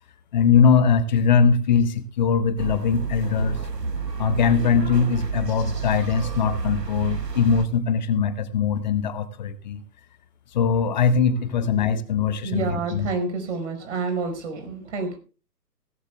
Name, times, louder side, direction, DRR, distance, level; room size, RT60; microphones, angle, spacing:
voice 1, 0.3-3.6 4.2-9.8 10.5-13.1, left 6 dB, 30° left, 14 dB, 0.8 m, -21 dB
sound 1, 2.6-7.7, right 4 dB, 90° right, 1.3 m, -29 dB
voice 2, 12.4-15.2, right 4 dB, 50° right, 6 dB, 5.0 m, -29 dB
17.0 x 14.5 x 2.3 m, 0.34 s
figure-of-eight pair, 125°, 48 cm